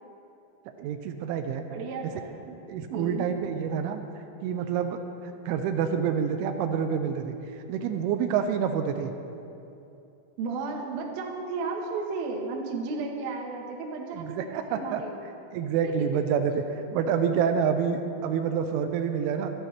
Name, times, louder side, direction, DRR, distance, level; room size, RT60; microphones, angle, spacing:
voice 1, 0.8-1.6 2.7-4.0 4.4-5.0 5.5-7.4 7.7-9.1 14.1-15.0 15.5-19.5, right 7 dB, 90° right, 7 dB, 3.1 m, -27 dB
voice 2, 1.7-2.6 2.9-3.3 10.4-15.2 15.8-15.9, right 4 dB, 65° right, 0 dB, 2.7 m, -34 dB
25.0 x 9.3 x 3.3 m, 2.8 s
omnidirectional pair, 5.5 m